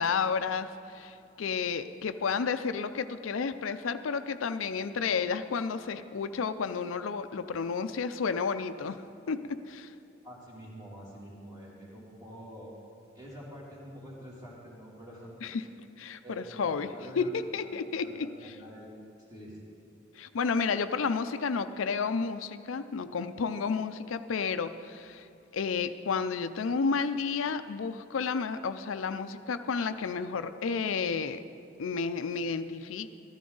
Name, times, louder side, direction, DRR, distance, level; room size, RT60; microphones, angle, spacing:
voice 1, 0.0-9.9 15.4-15.6 16.0-18.3 20.2-25.3 25.5-31.4 31.8-33.1, left 5 dB, 85° left, 10 dB, 0.5 m, -31 dB
voice 2, 10.2-12.7 13.1-15.7 16.2-19.6, equal, 20° right, -5 dB, 2.7 m, -47 dB
14.0 x 13.5 x 3.9 m, 2.8 s
head